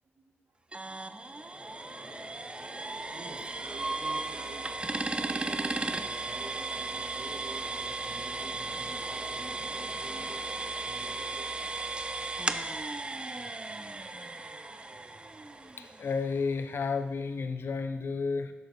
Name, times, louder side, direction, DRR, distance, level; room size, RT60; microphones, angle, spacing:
sound 1, 0.7-16.4, right 3 dB, 25° right, 0.4 m, -36 dB
sound 2, 1.1-12.7, equal, 5° left, 2.4 m, -50 dB
voice 1, 3.1-4.7 5.1-11.7, right 3 dB, 70° right, 1 dB, 1.3 m, -48 dB
voice 2, 15.7-18.5, left 4 dB, 60° left, 9 dB, 0.5 m, -32 dB
7.8 x 6.3 x 3.2 m, 1.1 s
cardioid pair, 60°, 4 cm